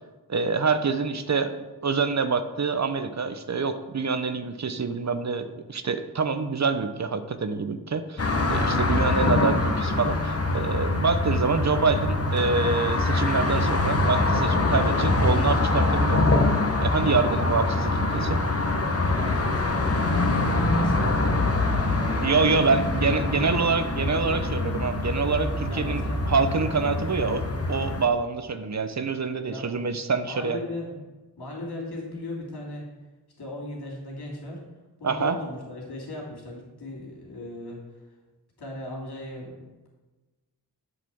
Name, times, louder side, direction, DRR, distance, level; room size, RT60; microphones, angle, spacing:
voice 1, 0.3-16.2 16.8-18.4 22.2-30.6 35.0-35.4, right 4 dB, 45° right, 10 dB, 0.8 m, -26 dB
sound 1, 8.2-28.1, left 2 dB, 40° left, 1.2 m, -24 dB
voice 2, 19.1-22.8 23.0-23.6 25.7-26.2 29.5-29.8 30.3-31.0 31.4-32.9 33.4-34.6 35.0-37.8 38.6-39.9, left 1 dB, 90° left, -3 dB, 2.6 m, -37 dB
7.6 x 4.1 x 6.9 m, 1.2 s
cardioid pair, 45°, 39 cm